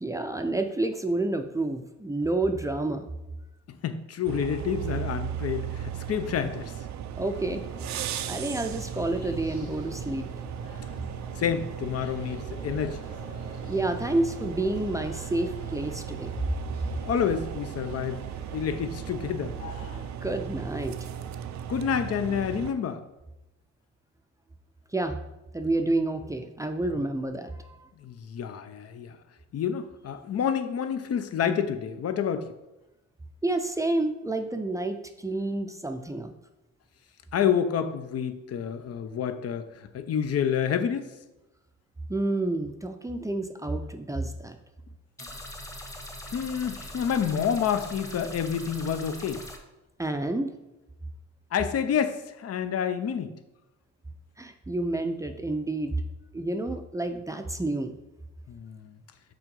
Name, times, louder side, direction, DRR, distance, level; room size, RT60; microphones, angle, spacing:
voice 1, 0.0-3.1 7.2-7.6 7.9-10.2 13.7-16.4 20.2-20.9 24.9-25.2 25.5-27.8 33.4-36.3 42.1-44.6 50.0-50.5 54.4-56.0 56.3-57.9, right 2 dB, 10° right, 6 dB, 0.5 m, -29 dB
voice 2, 3.7-6.7 11.4-13.0 17.0-18.2 18.5-19.5 21.7-23.0 28.0-29.2 29.5-32.5 37.3-41.1 46.3-49.4 51.5-53.4 58.5-59.0, left 8 dB, 55° left, 10 dB, 0.7 m, -28 dB
sound 1, 4.2-22.7, right 9 dB, 65° right, 0.5 m, -36 dB
sound 2, 7.4-20.0, left 3 dB, 90° left, 1.4 m, -48 dB
sound 3, 45.2-49.6, left 1 dB, 10° left, 1.1 m, -41 dB
5.9 x 3.7 x 5.3 m, 0.98 s
cardioid pair, 90°, 30 cm